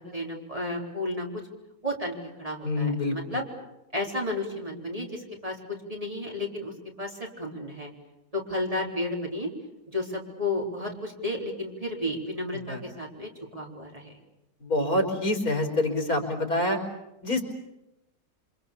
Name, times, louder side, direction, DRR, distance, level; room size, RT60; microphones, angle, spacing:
voice 1, 0.1-1.4 1.8-3.4 3.9-6.7 7.0-7.9 8.3-9.5 9.9-14.1 14.8-14.9, left 1 dB, 25° right, -1 dB, 4.2 m, -32 dB
voice 2, 2.6-3.4 12.7-12.8 14.6-16.8 17.2-17.4, left 1 dB, 80° left, 3 dB, 4.8 m, -26 dB
28.0 x 25.5 x 6.9 m, 0.92 s
omnidirectional pair, 1.6 m